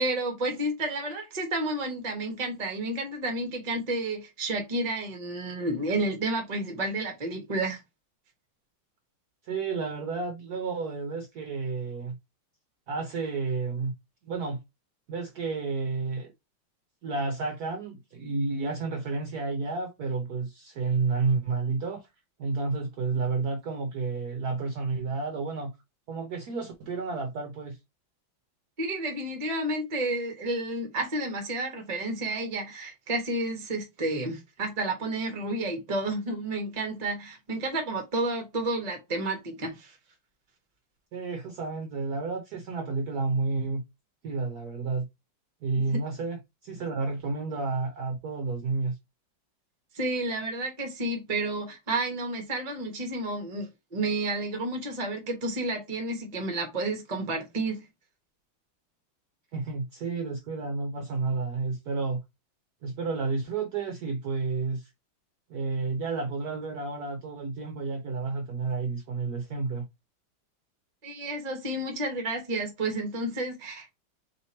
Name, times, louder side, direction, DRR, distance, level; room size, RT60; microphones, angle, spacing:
voice 1, 0.0-7.8 28.8-39.9 45.8-45.9 49.9-57.8 71.0-73.9, right 2 dB, 30° right, 0.8 m, -31 dB
voice 2, 9.4-12.2 12.9-13.9 14.2-14.6 15.1-16.3 17.0-22.1 22.4-25.7 26.1-27.8 41.1-43.8 44.2-45.1 45.6-49.0 59.5-62.2 62.8-64.9 65.5-69.8, right 4 dB, 65° right, 1.0 m, -31 dB
3.4 x 3.0 x 4.1 m
omnidirectional pair, 2.2 m